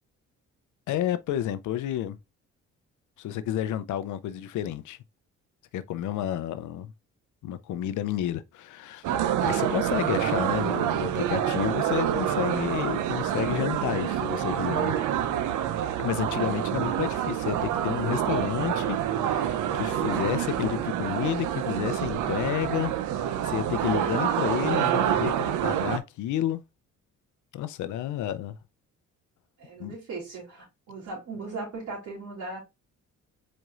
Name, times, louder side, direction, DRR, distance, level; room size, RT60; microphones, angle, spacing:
voice 1, 0.9-2.2 3.2-5.0 5.7-6.9 7.4-9.0 9.4-15.0 16.0-26.6 27.5-28.6 29.8-30.0, left 11 dB, 75° left, 0.5 m, -31 dB
sound 1, 9.0-26.0, right 10 dB, 80° right, 0.6 m, -27 dB
voice 2, 29.6-32.6, right 3 dB, 65° right, 2.9 m, -38 dB
4.8 x 4.3 x 2.4 m
cardioid pair, 90°, 30 cm